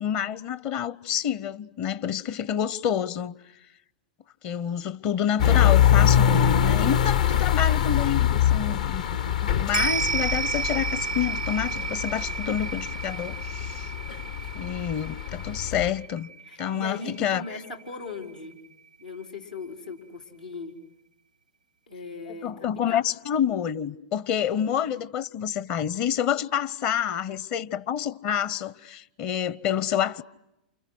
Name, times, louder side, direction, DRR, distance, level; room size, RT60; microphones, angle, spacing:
voice 1, 0.0-3.3 4.4-9.0 9.4-13.9 14.5-16.3 16.6-17.4 22.4-30.2, left 9 dB, 45° left, 1.0 m, -28 dB
sound 1, 5.4-15.9, left 10 dB, 65° left, 1.2 m, -24 dB
sound 2, 9.7-18.3 18.6-18.7, right 5 dB, 90° right, 0.9 m, -32 dB
voice 2, 16.4-18.6 19.0-20.8 21.9-23.0, left 3 dB, 85° left, 4.6 m, -39 dB
29.0 x 29.0 x 6.3 m
figure-of-eight pair, 95°, 4 cm